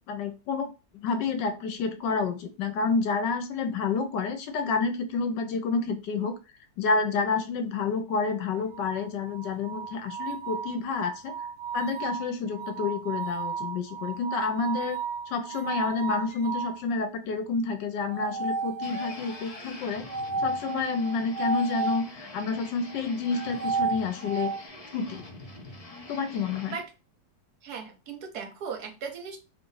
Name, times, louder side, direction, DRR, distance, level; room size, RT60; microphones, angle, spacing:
voice 1, 0.1-0.7 1.0-6.3 6.8-11.3 11.7-15.0 15.3-20.1 20.4-24.5 24.9-25.3 26.1-26.8, left 4 dB, 80° left, 1.3 m, -29 dB
sound 1, 8.7-16.8 18.1-19.3 20.1-22.1 23.3-24.6, right 4 dB, 40° right, 0.7 m, -33 dB
sound 2, 18.8-26.8, left 2 dB, 50° left, 0.4 m, -45 dB
voice 2, 27.6-29.4, right 6 dB, 65° right, 1.2 m, -37 dB
3.1 x 2.6 x 3.8 m
omnidirectional pair, 1.9 m